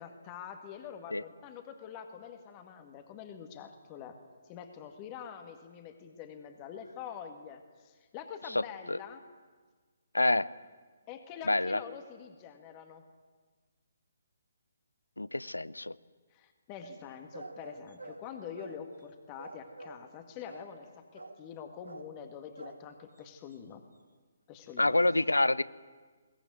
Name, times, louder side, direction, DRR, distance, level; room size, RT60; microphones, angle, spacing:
voice 1, 0.0-4.2 4.5-9.2 11.1-13.0 16.3-23.8 24.5-25.1, left 7 dB, 25° left, 7 dB, 1.8 m, -46 dB
voice 2, 10.1-10.5 11.5-11.8 15.2-16.0 24.8-25.6, left 2 dB, 75° left, 19 dB, 0.7 m, -27 dB
sound 1, 16.8-19.1 19.4-20.2 20.5-20.9 21.2-21.6 21.8-22.2 22.6-22.9 23.2-23.3 23.5-23.6, right 2 dB, 70° right, 2.0 m, -48 dB
21.5 x 19.0 x 9.5 m, 1.4 s
figure-of-eight pair, 135°, 0 cm